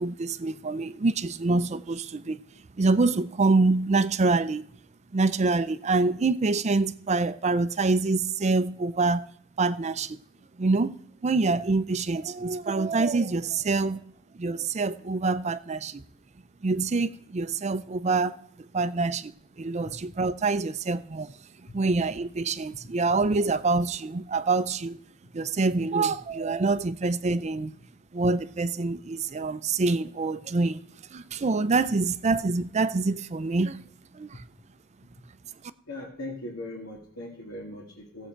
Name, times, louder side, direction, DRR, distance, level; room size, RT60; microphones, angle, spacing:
voice 1, 0.0-2.4 2.8-4.6 5.1-9.3 9.6-10.2 10.6-10.9 11.2-14.0 14.3-16.0 16.6-21.3 21.7-25.0 25.3-27.8 28.1-30.8 31.1-33.9 34.1-34.4, right 3 dB, 35° right, 0.5 m, -26 dB
voice 2, 35.9-38.3, left 1 dB, 75° left, 2.0 m, -39 dB
16.5 x 7.7 x 4.5 m
head